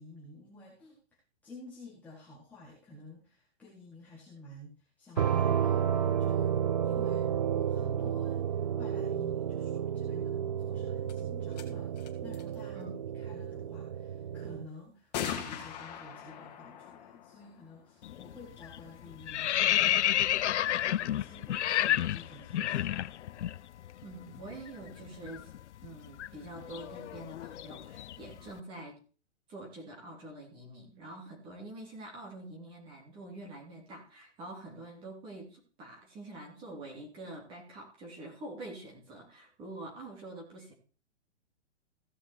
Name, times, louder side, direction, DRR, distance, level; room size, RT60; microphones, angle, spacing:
voice 1, 0.0-11.9 12.2-12.9 13.1-23.1, left 2 dB, 5° left, -6 dB, 1.7 m, -51 dB
sound 1, 5.2-7.9 10.5-10.6 11.1-11.2 11.5-11.7 12.0-12.6 13.8-13.9 15.1-18.7, left 9 dB, 35° left, 2.3 m, -43 dB
sound 2, 5.2-14.7, right 9 dB, 35° right, 0.4 m, -31 dB
voice 2, 12.7-13.1 24.0-25.5 25.8-29.0 29.5-40.7, right 2 dB, 15° right, 0 dB, 2.8 m, -46 dB
sound 3, 18.0-18.3 18.6-23.6 23.8-24.0 24.3-28.4, left 12 dB, 80° left, 0.6 m, -30 dB
16.0 x 5.9 x 4.5 m, 0.38 s
hypercardioid pair, 175°, 35 cm